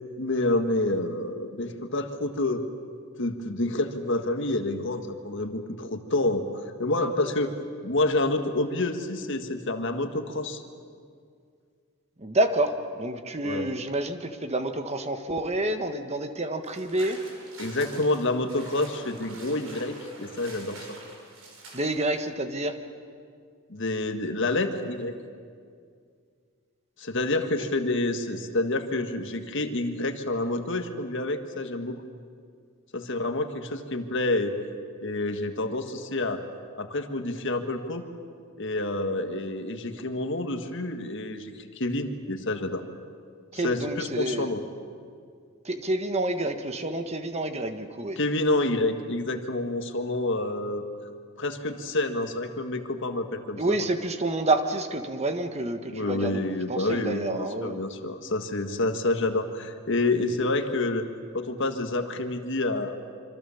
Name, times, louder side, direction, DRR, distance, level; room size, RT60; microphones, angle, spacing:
voice 1, 0.2-2.6 3.2-6.4 6.8-7.5 7.8-10.6 13.4-13.7 17.6-20.8 23.7-25.2 27.0-32.0 32.9-34.5 35.0-36.4 36.8-38.0 38.6-42.8 43.5-44.6 48.2-50.8 51.4-53.9 55.9-61.1 61.3-63.0, left 2 dB, 60° left, 7 dB, 1.7 m, -28 dB
voice 2, 12.2-17.2 21.7-22.8 43.5-44.5 45.6-48.2 53.6-57.8, right 2 dB, 30° right, 7 dB, 1.5 m, -28 dB
sound 1, 16.6-22.3, right 2 dB, 80° right, 6.2 m, -45 dB
26.0 x 25.5 x 7.1 m, 2.2 s
head